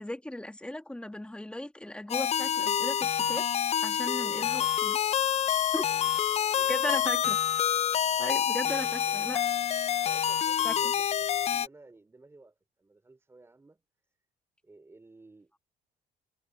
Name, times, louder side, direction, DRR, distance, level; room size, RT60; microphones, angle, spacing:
voice 1, 0.0-3.5 3.8-5.2 5.7-5.9 6.7-7.4 8.2-9.4 10.6-10.7, left 1 dB, 5° left, 1.9 m, -37 dB
sound 1, 2.1-11.7, left 9 dB, 40° left, 0.5 m, -27 dB
voice 2, 4.2-4.8 5.5-5.6 5.9-7.3 8.2-9.4 10.0-13.8 14.6-15.6, right 2 dB, 15° right, 3.5 m, -55 dB
cardioid pair, 110°, 17 cm